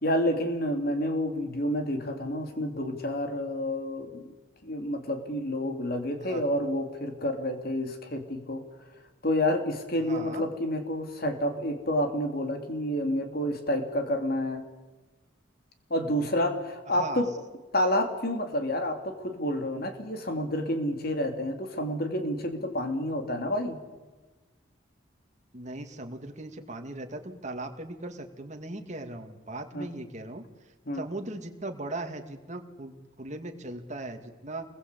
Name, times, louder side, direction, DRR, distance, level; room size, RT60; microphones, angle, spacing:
voice 1, 0.0-4.3 4.6-8.6 9.2-14.7 15.9-17.3 17.7-23.8 29.7-29.9 30.9-31.0, left 1 dB, 50° left, 5 dB, 3.0 m, -29 dB
voice 2, 10.0-10.5 16.9-17.2 25.5-30.4 30.9-34.6, right 2 dB, 35° right, 4 dB, 2.4 m, -38 dB
28.0 x 21.0 x 8.4 m, 1.2 s
head